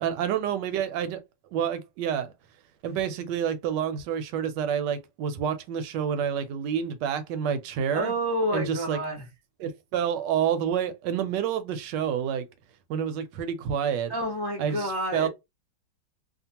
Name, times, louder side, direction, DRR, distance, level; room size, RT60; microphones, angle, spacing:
voice 1, 0.0-1.2 1.5-2.3 2.8-8.1 8.5-9.0 9.6-12.5 12.9-14.1 14.6-15.3, right 8 dB, 75° right, 1.1 m, -28 dB
voice 2, 7.9-9.3 14.1-15.3, equal, 35° left, 0.4 m, -29 dB
2.8 x 2.4 x 2.8 m
omnidirectional pair, 2.0 m